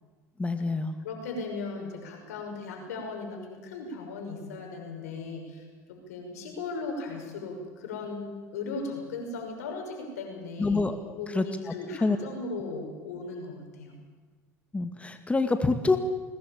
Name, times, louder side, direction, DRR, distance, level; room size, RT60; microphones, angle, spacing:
voice 1, 0.4-1.0 10.6-11.0 11.3-11.4 12.0-12.2 14.7-16.0, left 3 dB, 15° left, 8 dB, 2.1 m, -26 dB
voice 2, 1.0-14.0, left 3 dB, 90° left, 3 dB, 6.2 m, -37 dB
21.5 x 19.5 x 8.9 m, 1.4 s
hypercardioid pair, 85°, 8 cm